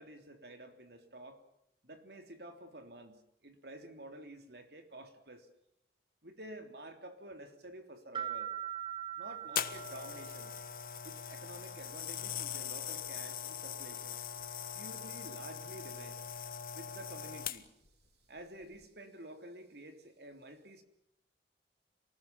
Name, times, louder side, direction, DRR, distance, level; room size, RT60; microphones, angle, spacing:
voice 1, 0.0-1.4 1.8-5.5 6.2-8.5 9.2-10.6 11.0-14.2 14.7-16.5 16.7-17.7 18.3-20.8, right 1 dB, 65° right, 6 dB, 3.4 m, -50 dB
sound 1, 8.1-10.8, right 10 dB, 30° right, 1.8 m, -41 dB
sound 2, 9.6-17.9 18.6-18.8, left 8 dB, 50° left, 1.3 m, -41 dB
27.5 x 19.5 x 7.4 m, 0.75 s
head